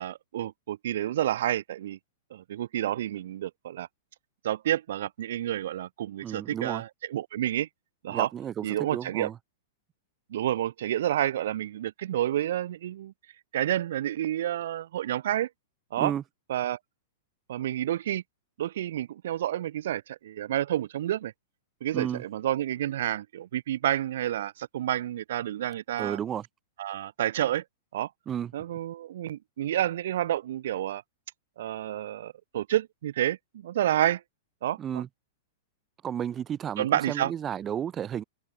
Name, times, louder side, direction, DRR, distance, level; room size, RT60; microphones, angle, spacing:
voice 1, 0.0-2.0 2.3-3.9 4.4-7.7 8.0-8.3 8.6-9.3 10.3-13.1 13.5-15.5 15.9-16.1 16.5-16.8 17.5-18.2 18.6-21.3 21.8-26.2 26.8-27.6 27.9-28.1 28.5-31.0 31.6-34.2 34.6-35.0 36.8-37.3, right 12 dB, 70° right, 1.6 m, -29 dB
voice 2, 6.2-6.8 8.1-8.7 8.9-9.4 16.0-16.2 21.9-22.2 26.0-26.4 28.3-28.5 34.8-35.1 36.0-38.2, right 9 dB, 25° right, 1.5 m, -32 dB
hypercardioid pair, 115°, 0 cm